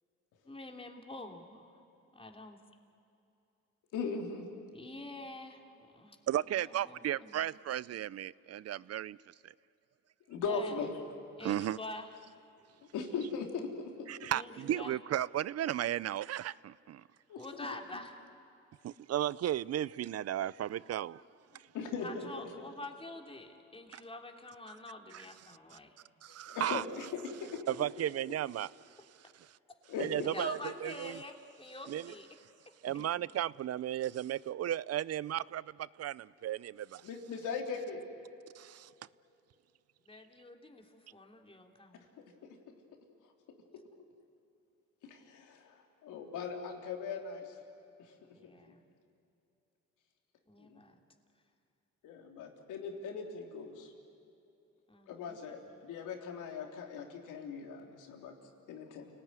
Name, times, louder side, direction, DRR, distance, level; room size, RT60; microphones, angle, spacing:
voice 1, 0.4-1.8 2.1-2.6 4.7-6.2 6.5-7.4 10.5-10.8 11.4-12.1 14.3-15.0 17.3-18.2 22.0-26.0 27.8-27.9 30.3-32.3 40.0-42.1 48.3-48.8 50.5-51.0 54.9-55.8, left 2 dB, 20° left, 3.0 m, -47 dB
voice 2, 3.9-4.5 10.3-10.9 12.9-14.1 17.3-17.7 21.7-22.3 26.5-27.6 29.9-30.1 33.0-33.1 37.0-38.0 42.4-42.6 45.0-47.6 48.0-48.1 50.6-50.8 52.0-53.9 55.1-58.3 58.7-59.1, left 5 dB, 85° left, 3.5 m, -39 dB
voice 3, 6.3-9.2 9.4-9.5 11.4-11.8 14.1-17.0 18.8-21.2 23.9-24.0 25.1-25.3 26.2-26.8 27.7-28.7 30.0-31.2 31.9-32.1 32.8-37.0 38.6-38.9, right 12 dB, 55° right, 0.6 m, -35 dB
29.5 x 19.0 x 9.6 m
cardioid pair, 90°, 30 cm